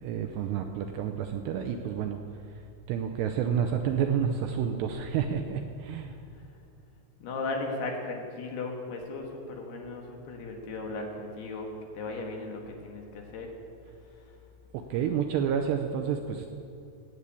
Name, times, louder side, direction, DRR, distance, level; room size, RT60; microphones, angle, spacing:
voice 1, 0.0-2.2 2.9-6.1 14.7-16.5, right 8 dB, 80° right, 5 dB, 2.5 m, -29 dB
voice 2, 7.2-11.7 11.9-13.5, left 3 dB, 65° left, 1 dB, 3.2 m, -36 dB
17.5 x 8.1 x 8.5 m, 2.5 s
omnidirectional pair, 5.5 m